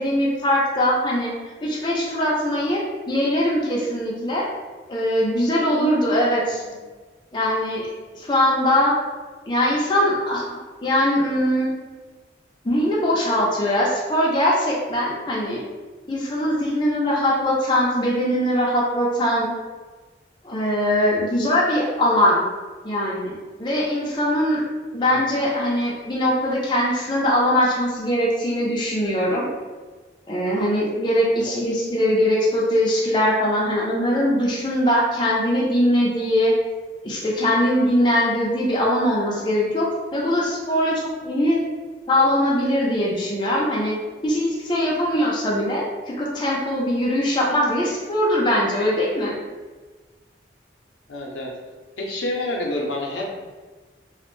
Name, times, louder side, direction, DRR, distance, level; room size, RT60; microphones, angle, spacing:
voice 1, 0.0-1.3 1.6-4.5 4.9-6.6 7.3-8.9 9.5-11.7 12.6-15.6 16.1-19.5 20.4-22.4 22.8-24.6 24.9-29.5 30.3-36.5 37.0-41.6 42.1-44.0 44.2-49.4, equal, 25° left, -4 dB, 0.4 m, -21 dB
voice 2, 25.1-25.4 31.4-31.6 39.3-39.4 51.1-51.5 52.0-53.3, left 1 dB, 85° left, -1 dB, 0.5 m, -28 dB
2.4 x 2.0 x 3.0 m, 1.3 s
head